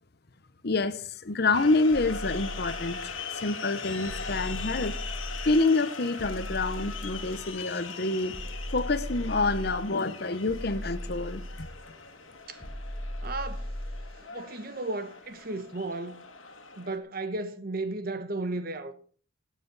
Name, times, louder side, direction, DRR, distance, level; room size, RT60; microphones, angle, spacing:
voice 1, 0.6-3.1 3.4-5.0 5.5-8.4 8.7-11.7, left 3 dB, 50° left, 0.9 m, -27 dB
sound 1, 1.5-17.0, left 5 dB, 75° left, 1.8 m, -41 dB
sound 2, 1.9-3.2 4.0-5.7 6.2-7.6 8.3-9.9 10.5-11.9 12.6-14.2, equal, ahead, 3.7 m, -38 dB
voice 2, 13.2-13.7 14.2-16.2 16.8-18.9, right 2 dB, 45° right, 1.1 m, -34 dB
16.0 x 9.3 x 4.1 m
head